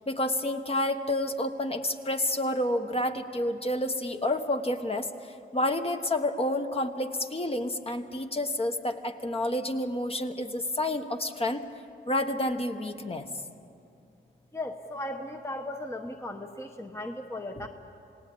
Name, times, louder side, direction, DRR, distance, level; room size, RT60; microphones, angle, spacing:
voice 1, 0.0-5.1 5.5-11.6 12.1-13.3, left 1 dB, 30° left, 6 dB, 1.2 m, -29 dB
voice 2, 14.5-17.7, left 1 dB, 15° left, 4 dB, 1.0 m, -37 dB
28.5 x 18.5 x 8.5 m, 2.6 s
wide cardioid pair, 140°, 20 cm